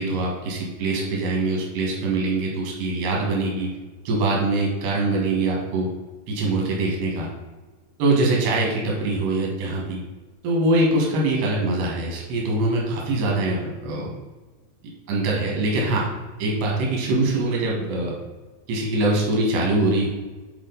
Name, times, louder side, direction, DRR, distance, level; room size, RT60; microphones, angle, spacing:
voice 1, 0.0-3.7 4.1-5.9 6.3-7.3 8.0-10.0 10.4-14.1 15.1-16.1 16.4-18.1 18.7-20.1, right 2 dB, 85° right, -2 dB, 3.7 m, -23 dB
9.1 x 4.5 x 3.9 m, 1.3 s
omnidirectional pair, 4.7 m